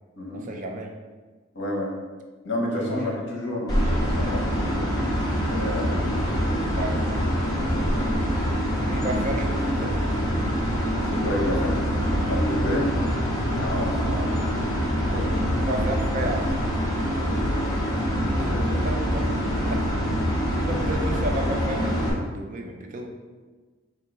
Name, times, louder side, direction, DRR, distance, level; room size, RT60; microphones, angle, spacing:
voice 1, 0.3-0.9 2.7-3.2 6.8-7.0 8.8-10.0 14.0-14.3 15.0-15.3 15.6-16.6 18.4-18.6 18.8-19.3 19.7-20.3 20.7-23.2, right 1 dB, 40° right, 3 dB, 0.4 m, -32 dB
voice 2, 1.5-1.9 2.4-4.9 5.5-7.0 7.4-8.0 11.0-12.0 12.2-12.9 13.6-14.0 18.5-18.8, left 1 dB, 60° left, -2 dB, 0.9 m, -30 dB
sound 1, 3.7-22.1, equal, 20° left, 0.7 m, -25 dB
3.7 x 2.3 x 4.5 m, 1.3 s
head